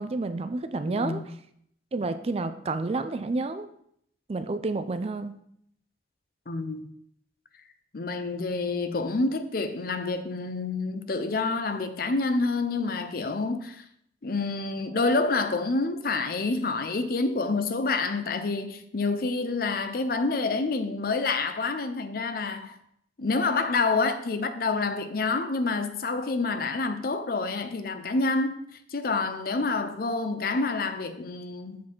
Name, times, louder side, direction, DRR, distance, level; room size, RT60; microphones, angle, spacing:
voice 1, 0.0-1.4 1.9-3.7 4.3-5.3, right 3 dB, 35° right, 0.4 m, -30 dB
voice 2, 0.8-1.2 6.5-6.9 7.9-13.8 14.2-22.8 23.2-28.6 28.9-31.8, left 3 dB, 55° left, 0.6 m, -28 dB
7.3 x 4.1 x 4.5 m
head